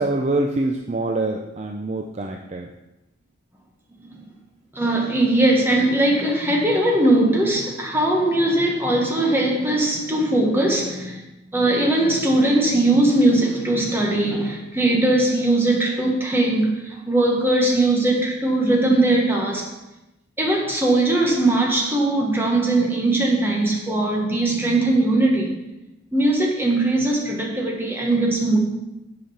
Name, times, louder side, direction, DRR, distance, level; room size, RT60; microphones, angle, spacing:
voice 1, 0.0-2.7, right 2 dB, 30° right, 2 dB, 0.5 m, -25 dB
voice 2, 4.7-11.2 11.5-19.7 20.4-25.6 26.1-28.6, right 2 dB, 10° right, -1 dB, 1.2 m, -20 dB
8.2 x 5.0 x 5.6 m, 0.95 s
head